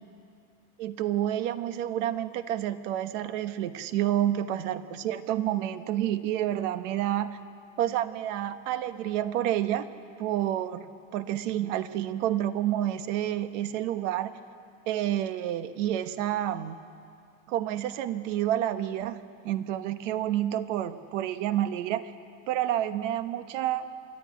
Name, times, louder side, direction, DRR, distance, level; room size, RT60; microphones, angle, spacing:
voice 1, 0.8-7.3 7.8-9.9 10.2-14.3 14.9-16.8 17.5-22.1 22.5-23.9, right 12 dB, 90° right, 11 dB, 1.2 m, -29 dB
27.5 x 12.5 x 9.5 m, 2.3 s
cardioid pair, 170°, 36 cm